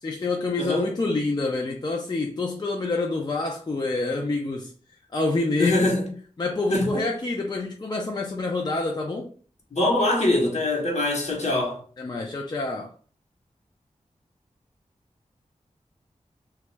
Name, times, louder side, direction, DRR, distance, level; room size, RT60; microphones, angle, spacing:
voice 1, 0.0-4.7 5.1-5.9 6.4-9.3 12.0-12.9, left 3 dB, 35° left, 0.4 m, -27 dB
voice 2, 0.6-0.9 5.6-6.1 6.7-7.0 9.7-11.8, left 1 dB, 60° left, 0.9 m, -23 dB
2.2 x 2.0 x 3.2 m
cardioid pair, 45°, 13 cm